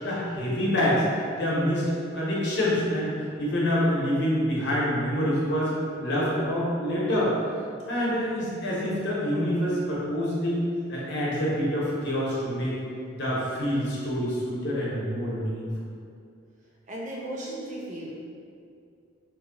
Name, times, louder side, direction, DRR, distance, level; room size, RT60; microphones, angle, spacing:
voice 1, 0.0-5.7 6.0-7.3 7.9-10.6 10.9-12.8 13.1-15.9, equal, 55° left, -6 dB, 0.8 m, -26 dB
voice 2, 16.9-18.1, right 1 dB, 35° right, -4 dB, 0.5 m, -35 dB
3.0 x 2.2 x 3.7 m, 2.4 s
head